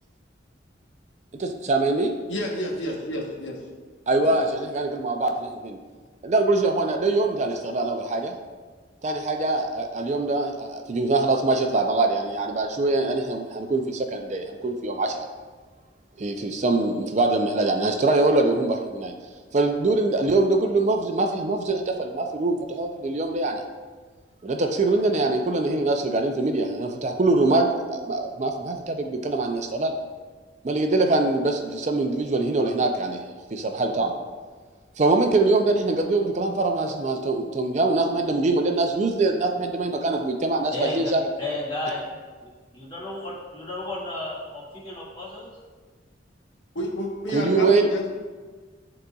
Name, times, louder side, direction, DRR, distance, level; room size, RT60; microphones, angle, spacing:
voice 1, 1.3-2.1 4.1-5.8 6.2-8.3 9.0-15.3 16.2-19.1 19.5-23.6 24.4-30.0 30.6-33.2 33.5-34.2 35.0-41.2 47.3-47.9, right 2 dB, 40° right, 4 dB, 0.4 m, -23 dB
voice 2, 2.3-3.6 4.2-4.3 46.7-48.1, equal, 75° left, -1 dB, 1.1 m, -29 dB
voice 3, 40.7-42.1 42.4-45.5, left 2 dB, 30° left, -7 dB, 1.8 m, -33 dB
11.5 x 3.9 x 2.3 m, 1.4 s
head